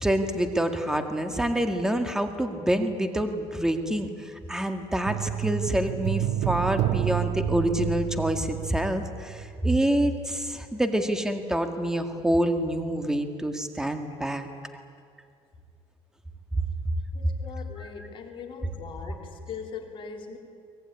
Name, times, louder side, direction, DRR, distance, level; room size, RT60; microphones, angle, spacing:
voice 1, 0.0-14.5, right 1 dB, 5° right, 6 dB, 1.9 m, -27 dB
sound 1, 5.1-9.5 9.8-9.9, right 13 dB, 70° right, 0.5 m, -29 dB
voice 2, 17.1-20.4, left 5 dB, 45° left, 2 dB, 3.6 m, -40 dB
24.0 x 19.5 x 9.8 m, 2.3 s
cardioid pair, 125°, 12 cm